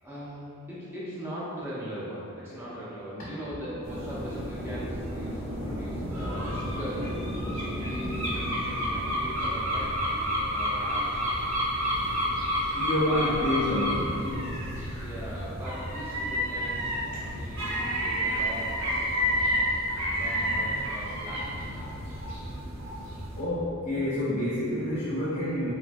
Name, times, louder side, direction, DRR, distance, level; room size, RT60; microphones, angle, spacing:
voice 1, 0.0-7.2 7.6-11.7 12.9-13.3 14.9-18.9 19.1-19.7 20.1-21.9, equal, 10° right, -8 dB, 0.5 m, -40 dB
sound 1, 3.8-23.4, equal, 75° right, 0.7 m, -30 dB
voice 2, 12.7-14.2 23.3-25.7, left 1 dB, 45° left, -10 dB, 0.6 m, -28 dB
2.9 x 2.3 x 2.5 m, 2.7 s
head